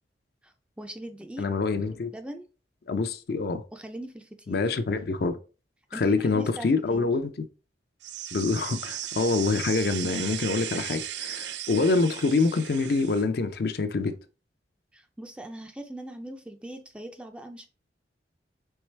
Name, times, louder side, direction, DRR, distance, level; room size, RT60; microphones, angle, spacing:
voice 1, 0.4-1.5 2.1-2.5 3.7-4.7 5.9-7.1 14.9-17.7, right 1 dB, 5° right, 0.4 m, -41 dB
voice 2, 1.4-2.1 2.9-3.6 4.5-5.4 5.9-7.5 8.3-14.1, left 3 dB, 60° left, 0.5 m, -26 dB
sound 1, 8.0-13.2, right 12 dB, 80° right, 0.4 m, -36 dB
4.6 x 3.2 x 3.2 m
head